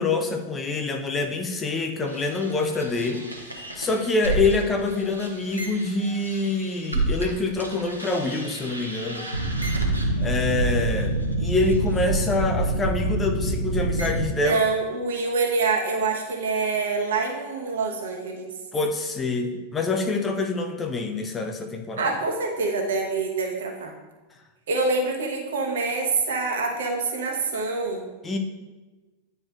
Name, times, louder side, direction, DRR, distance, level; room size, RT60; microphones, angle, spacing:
voice 1, 0.0-3.3 3.8-9.3 10.2-14.6 18.7-22.1 28.2-28.4, left 3 dB, 20° left, 5 dB, 0.6 m, -26 dB
sound 1, 2.1-7.3 7.6-14.3, right 2 dB, 85° right, 1.0 m, -28 dB
voice 2, 14.4-18.5 22.0-23.9 24.7-28.1, right 3 dB, 60° right, 1 dB, 1.1 m, -26 dB
9.7 x 4.4 x 2.5 m, 1.2 s
figure-of-eight pair, 90°, 0 cm